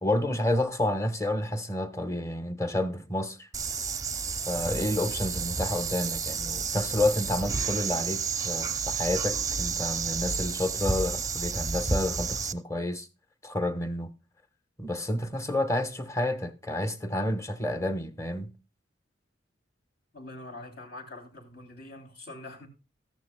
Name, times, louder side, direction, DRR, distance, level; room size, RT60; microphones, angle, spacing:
voice 1, 0.0-3.5 4.5-13.1 13.4-14.1 14.8-18.5, left 1 dB, 15° left, 1.1 m, -30 dB
sound 1, 3.5-12.5, right 5 dB, 20° right, 0.6 m, -31 dB
voice 2, 20.1-22.7, left 2 dB, 60° left, 3.0 m, -44 dB
13.5 x 13.5 x 2.2 m
head